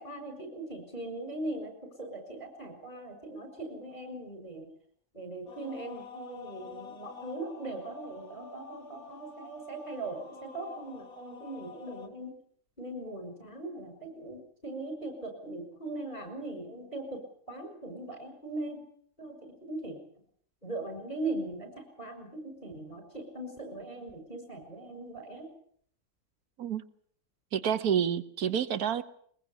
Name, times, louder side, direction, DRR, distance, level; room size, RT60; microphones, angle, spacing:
voice 1, 0.0-4.7 5.1-12.3 12.8-18.9 19.2-20.0 20.6-25.5, right 2 dB, 30° left, 5 dB, 6.7 m, -40 dB
Men Tenor Choir, 5.5-12.1, left 4 dB, 70° left, 2.4 m, -48 dB
voice 2, 27.5-29.0, right 8 dB, 75° right, 12 dB, 1.6 m, -28 dB
21.5 x 21.0 x 7.2 m, 0.63 s
omnidirectional pair, 1.6 m